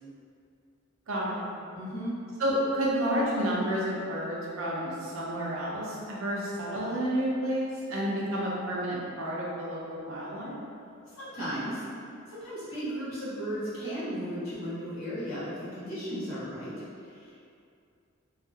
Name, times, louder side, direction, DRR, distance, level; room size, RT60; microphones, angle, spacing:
voice 1, 1.1-1.5 2.4-10.6, equal, 80° right, -5 dB, 0.6 m, -30 dB
voice 2, 1.7-2.1 11.1-11.8 12.3-17.3, equal, 90° left, -11 dB, 1.2 m, -35 dB
2.8 x 2.4 x 2.8 m, 2.4 s
head